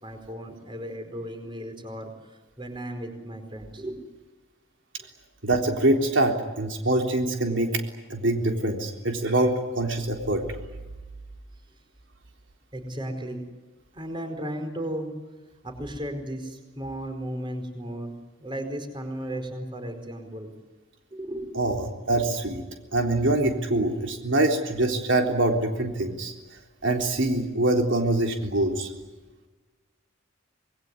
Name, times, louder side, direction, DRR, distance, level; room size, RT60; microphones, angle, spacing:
voice 1, 0.0-4.0 12.7-13.4 13.9-15.1 15.6-18.1 18.4-20.5 21.1-21.5, right 1 dB, 25° right, 6 dB, 4.7 m, -35 dB
voice 2, 5.4-7.8 8.1-10.4 21.5-22.6 22.9-26.3 26.8-28.9, right 2 dB, 70° right, 3 dB, 3.8 m, -24 dB
26.5 x 21.0 x 9.7 m, 1.2 s
head